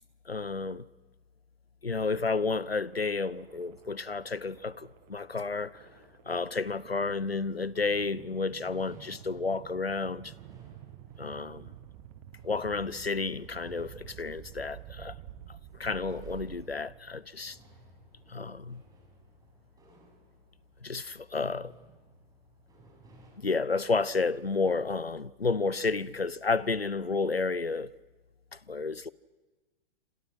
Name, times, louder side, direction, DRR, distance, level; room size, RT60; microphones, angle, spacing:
voice 1, 0.3-0.9 1.8-5.9 6.3-10.3 11.2-11.7 12.4-15.2 15.5-17.6 18.3-18.8 20.8-21.7 23.4-27.9 28.5-29.1, left 4 dB, 90° left, 0.9 m, -31 dB
sound 1, 2.1-17.2, right 13 dB, 35° right, 1.5 m, -50 dB
sound 2, 3.4-23.3, right 2 dB, 10° right, 7.3 m, -60 dB
28.0 x 27.0 x 6.4 m
figure-of-eight pair, 110°, 30 cm